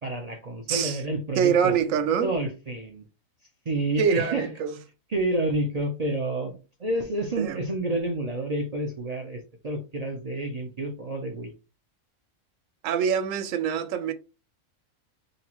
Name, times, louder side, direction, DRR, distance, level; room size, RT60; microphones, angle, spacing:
voice 1, 0.0-1.8 2.2-3.0 3.7-4.5 5.1-11.5, right 1 dB, 55° right, 0.4 m, -29 dB
voice 2, 0.7-1.0 1.4-2.3 4.0-4.7 7.4-7.6 12.8-14.1, right 7 dB, 70° right, 1.0 m, -24 dB
5.3 x 2.0 x 2.9 m
omnidirectional pair, 1.5 m